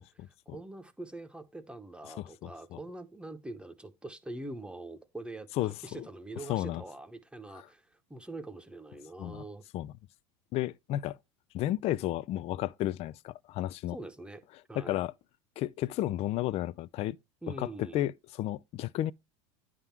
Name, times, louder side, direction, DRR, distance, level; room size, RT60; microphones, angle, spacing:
voice 1, 0.0-9.6 13.9-14.4 14.7-15.0 17.4-18.1, right 2 dB, 5° right, 1.0 m, -44 dB
voice 2, 2.2-2.8 5.6-6.0 6.5-6.8 7.5-7.7 9.2-9.4 9.7-9.9 10.5-11.2 11.5-14.0 14.7-15.1 15.6-17.2 17.6-19.1, left 14 dB, 40° left, 0.4 m, -33 dB
9.8 x 3.7 x 5.9 m
hypercardioid pair, 100°, 16 cm